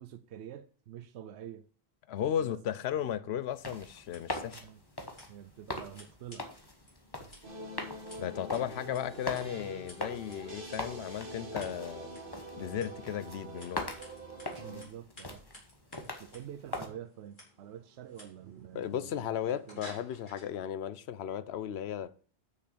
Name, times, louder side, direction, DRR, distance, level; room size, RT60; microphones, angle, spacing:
voice 1, 0.0-1.7 2.4-2.6 2.9-3.1 4.6-4.8 5.3-6.5 14.6-15.5 16.2-19.3 19.5-19.8, right 10 dB, 85° right, 0.9 m, -47 dB
voice 2, 2.1-4.6 8.2-12.2 12.6-13.9 18.7-22.1, left 10 dB, 75° left, 0.8 m, -35 dB
sound 1, 3.5-16.9, left 2 dB, 25° left, 1.2 m, -43 dB
Scissors, 3.9-20.5, equal, 50° left, 3.5 m, -57 dB
sound 2, 7.4-14.8, right 1 dB, 55° right, 1.8 m, -45 dB
6.4 x 5.9 x 6.7 m
omnidirectional pair, 1.1 m